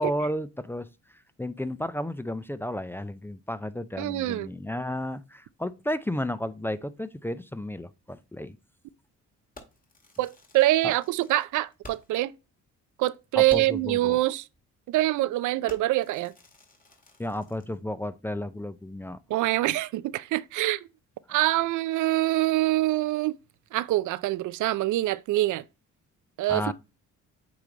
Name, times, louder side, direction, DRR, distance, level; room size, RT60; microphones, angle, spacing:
voice 1, 0.0-8.6 10.8-10.9 13.4-14.2 17.2-19.2 21.3-21.4 26.5-26.7, left 1 dB, 10° left, 0.4 m, -33 dB
voice 2, 4.0-4.5 10.2-12.3 13.0-14.4 14.9-16.3 19.3-20.8 21.3-23.3 23.7-25.6 26.4-26.7, right 16 dB, 80° right, 0.5 m, -25 dB
Fireworks, 9.5-12.3 12.6-12.7 13.1-13.2 13.5-13.9 14.5-14.7 15.1-15.3 15.7-17.8, left 2 dB, 30° left, 2.0 m, -51 dB
8.5 x 3.3 x 3.8 m
cardioid pair, 90°, 30 cm